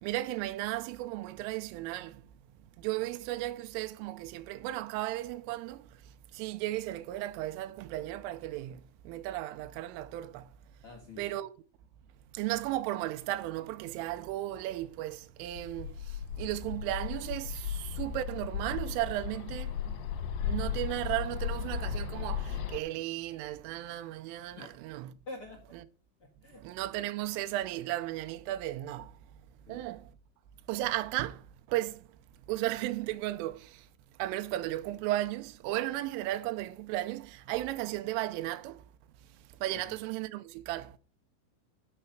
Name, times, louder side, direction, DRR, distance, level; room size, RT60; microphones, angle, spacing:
voice 1, 0.0-2.2 2.8-10.5 11.2-11.5 12.3-20.0 20.4-25.1 25.7-25.9 26.6-29.2 29.7-30.1 30.7-32.1 32.5-33.9 34.2-38.8 39.6-41.0, right 15 dB, 80° right, 3.2 m, -35 dB
voice 2, 10.8-11.2 24.6-24.7 25.2-25.6 26.2-26.6 29.7-29.9 39.8-39.9, left 2 dB, 60° left, 1.5 m, -46 dB
Bird, 15.5-22.8, left 7 dB, 75° left, 3.6 m, -36 dB
12.5 x 6.5 x 5.9 m
omnidirectional pair, 6.0 m